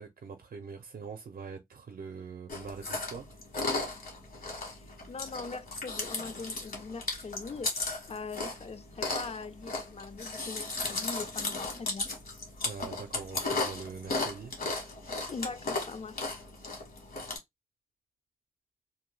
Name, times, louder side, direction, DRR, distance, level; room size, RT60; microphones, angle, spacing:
voice 1, 0.0-3.4 12.6-14.5, right 5 dB, 70° right, 0.5 m, -43 dB
Chewing mastication, 2.5-17.4, left 3 dB, 75° left, 1.4 m, -36 dB
voice 2, 5.1-12.1 15.3-16.3, left 4 dB, 45° left, 0.4 m, -41 dB
2.6 x 2.2 x 3.1 m
wide cardioid pair, 100°, 15 cm